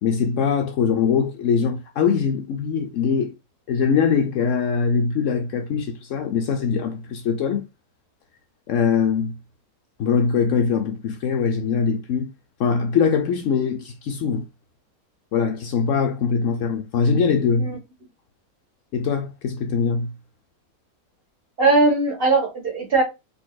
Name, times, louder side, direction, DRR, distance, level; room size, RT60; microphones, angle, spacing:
voice 1, 0.0-3.3 3.7-7.6 8.7-9.3 10.0-12.3 12.6-14.5 15.3-17.7 18.9-20.1, left 6 dB, 65° left, 0.8 m, -22 dB
voice 2, 21.6-23.0, right 3 dB, 40° right, 1.5 m, -19 dB
4.1 x 3.4 x 2.3 m
omnidirectional pair, 1.6 m